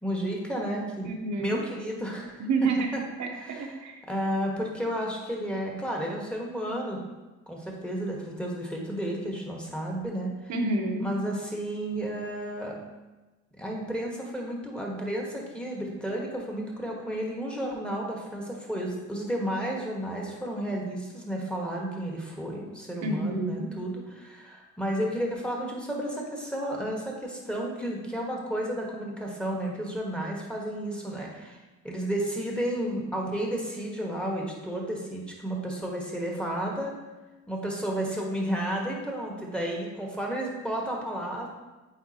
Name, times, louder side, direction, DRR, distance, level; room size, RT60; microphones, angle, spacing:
voice 1, 0.0-1.1 1.4-2.5 2.9-3.0 3.3-3.7 4.1-7.0 7.5-10.3 11.0-12.7 13.6-31.6 31.8-36.9 37.5-41.5, right 1 dB, 5° left, -1 dB, 1.4 m, -32 dB
voice 2, 1.0-1.6 2.4-4.0 10.5-11.1 23.0-23.7, right 3 dB, 70° right, 2 dB, 1.1 m, -29 dB
8.4 x 4.1 x 2.9 m, 1.2 s
cardioid pair, 90°, 30 cm